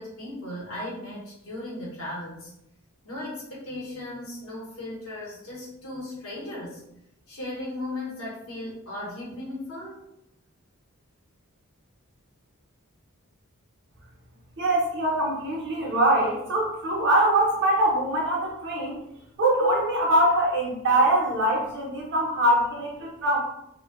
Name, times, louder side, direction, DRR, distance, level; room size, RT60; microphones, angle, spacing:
voice 1, 0.0-2.5 3.0-6.8 7.3-10.0, left 1 dB, 70° left, -6 dB, 0.8 m, -36 dB
voice 2, 14.6-19.0 19.4-23.4, right 1 dB, 55° right, -3 dB, 0.6 m, -23 dB
2.5 x 2.1 x 2.3 m, 0.81 s
head